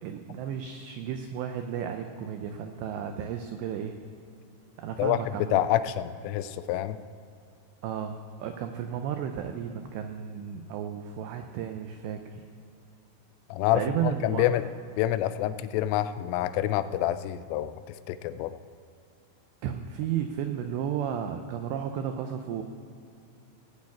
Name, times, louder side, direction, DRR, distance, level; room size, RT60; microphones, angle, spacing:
voice 1, 0.0-4.0 4.8-5.6 7.8-12.4 13.7-14.5 19.6-22.6, right 9 dB, 85° right, 6 dB, 2.4 m, -33 dB
voice 2, 5.5-7.0 13.5-14.7 15.0-18.6, left 13 dB, 85° left, 12 dB, 3.1 m, -27 dB
18.0 x 6.4 x 8.6 m, 2.5 s
omnidirectional pair, 5.9 m